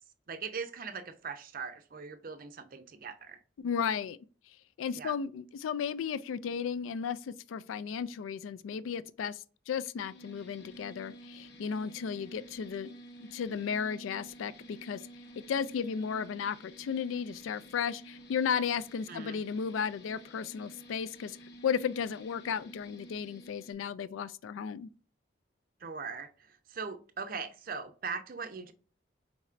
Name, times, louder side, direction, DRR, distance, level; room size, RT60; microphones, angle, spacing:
voice 1, 0.3-3.4 4.9-5.1 19.1-19.4 25.8-28.7, right 5 dB, 45° right, 0.5 m, -40 dB
voice 2, 3.6-4.2 4.8-12.9 13.2-15.0 15.5-21.4 21.6-24.9, left 7 dB, 90° left, 0.3 m, -34 dB
sound 1, 10.0-23.7, right 1 dB, 60° left, 0.7 m, -51 dB
4.3 x 4.1 x 2.4 m
head